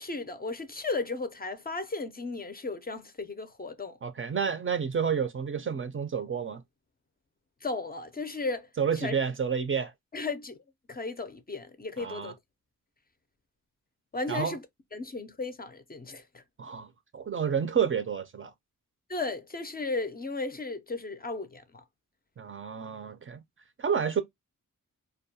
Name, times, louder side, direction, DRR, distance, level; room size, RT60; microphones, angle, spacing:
voice 1, 0.0-4.0 7.6-8.7 8.9-9.1 10.1-10.6 10.9-12.3 14.1-14.6 14.9-16.4 19.1-21.8, left 3 dB, 30° left, 0.4 m, -35 dB
voice 2, 4.0-6.6 8.8-9.9 12.0-12.3 14.3-14.6 16.6-16.9 17.1-18.5 22.4-23.4 23.8-24.2, right 7 dB, 40° right, 0.4 m, -29 dB
2.3 x 2.2 x 2.6 m
cardioid pair, 60°, 33 cm